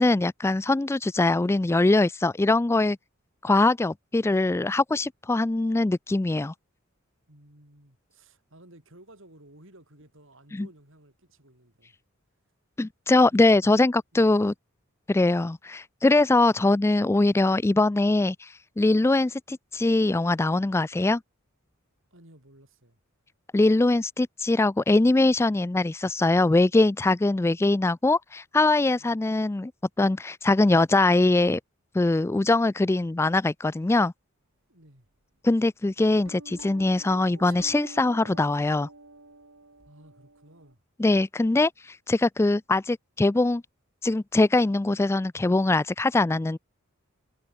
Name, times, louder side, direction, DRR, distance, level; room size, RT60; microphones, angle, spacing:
voice 1, 0.0-3.0 3.4-6.5 10.5-10.7 12.8-14.5 15.1-21.2 23.5-29.7 30.0-31.6 31.9-34.1 35.4-38.9 41.0-43.6 44.0-46.6, left 2 dB, 10° left, 0.3 m, -22 dB
voice 2, 7.3-12.0 13.3-14.4 22.1-23.0 29.0-29.2 34.7-35.1 39.8-40.8, right 1 dB, 65° right, 7.8 m, -54 dB
sound 1, 36.2-40.7, right 2 dB, 80° right, 5.8 m, -48 dB
head